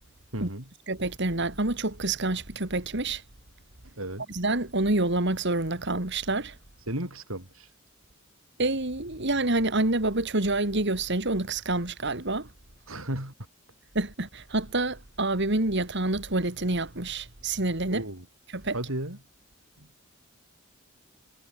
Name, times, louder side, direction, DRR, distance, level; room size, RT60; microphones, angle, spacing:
voice 1, 0.3-0.7 3.8-4.3 6.9-7.7 12.9-13.3 17.9-18.3 18.7-19.2 19.8-19.9, right 1 dB, 75° right, 7.1 m, -34 dB
voice 2, 0.9-3.2 4.3-6.5 8.6-12.5 13.9-18.0 18.5-18.8, right 2 dB, 55° right, 2.8 m, -27 dB
head